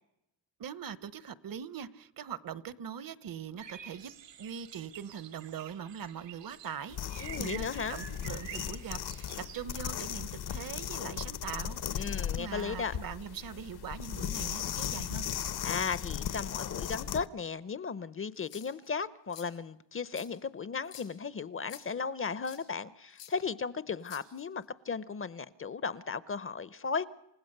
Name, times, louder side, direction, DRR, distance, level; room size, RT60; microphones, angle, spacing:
voice 1, 0.6-4.1 4.4-15.3, right 8 dB, 50° right, 1.0 m, -42 dB
sound 1, 3.6-9.7, right 9 dB, 85° right, 2.3 m, -48 dB
sound 2, 6.9-17.3, left 9 dB, 65° left, 1.0 m, -37 dB
voice 2, 7.2-8.0 12.0-12.9 15.6-27.1, left 5 dB, 30° left, 0.7 m, -36 dB
sound 3, 18.3-18.9 19.3-19.5 20.1-20.3 20.8-21.1 21.7-21.8 22.4-22.6 23.2-23.3 24.0-24.6, left 10 dB, 85° left, 5.2 m, -50 dB
28.5 x 16.0 x 6.6 m
cardioid pair, 130°, 42 cm